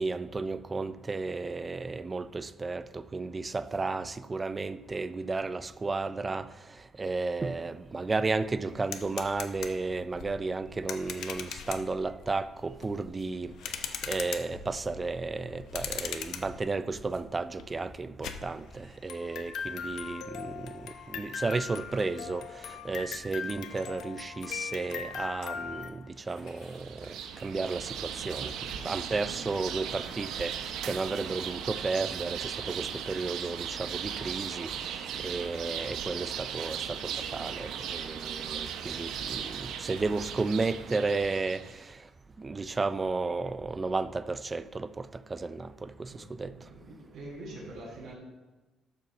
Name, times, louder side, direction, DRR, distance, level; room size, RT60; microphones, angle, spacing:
voice 1, 0.0-42.0 42.4-46.5, right 3 dB, 20° right, 0.4 m, -33 dB
Jingle Bells on a Music Box, 7.5-7.6 7.9-25.9, left 7 dB, 75° left, 0.8 m, -40 dB
sound 1, 26.1-27.6 27.9-28.5 29.2-29.3 30.1-30.2 30.5-30.6 31.1-32.4 32.9-33.9 34.3-35.5 36.0-36.1, left 3 dB, 60° left, 2.3 m, -58 dB
sound 2, 26.6-41.8, right 8 dB, 80° right, 0.7 m, -37 dB
voice 2, 46.5-48.2, right 1 dB, 65° right, 3.8 m, -44 dB
12.0 x 4.1 x 6.9 m
cardioid pair, 150°, 0 cm